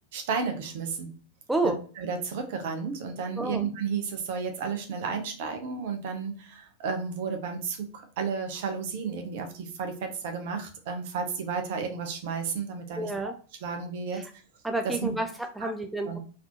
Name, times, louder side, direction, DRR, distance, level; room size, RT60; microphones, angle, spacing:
voice 1, 0.1-1.1 2.0-13.3 13.6-14.2 14.8-15.2 15.6-15.7 16.1-16.2, right 5 dB, 50° right, 5 dB, 0.8 m, -32 dB
voice 2, 1.5-1.8 3.4-3.6 13.0-13.3 14.1-14.3 14.6-16.2, right 2 dB, 5° right, 5 dB, 0.4 m, -30 dB
4.0 x 2.8 x 2.8 m, 0.39 s
figure-of-eight pair, 90°, 0 cm